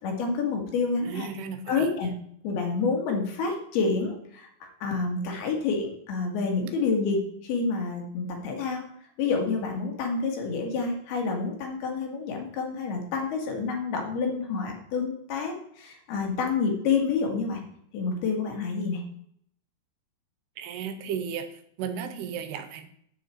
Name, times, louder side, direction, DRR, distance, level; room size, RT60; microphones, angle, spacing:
voice 1, 0.0-1.3 1.7-2.1 2.4-8.8 9.2-17.6 17.9-19.0, left 4 dB, 70° left, 2 dB, 3.8 m, -28 dB
voice 2, 1.1-1.9 20.6-21.5 21.8-22.9, right 7 dB, 90° right, 9 dB, 3.0 m, -34 dB
9.7 x 8.6 x 4.5 m, 0.67 s
omnidirectional pair, 4.7 m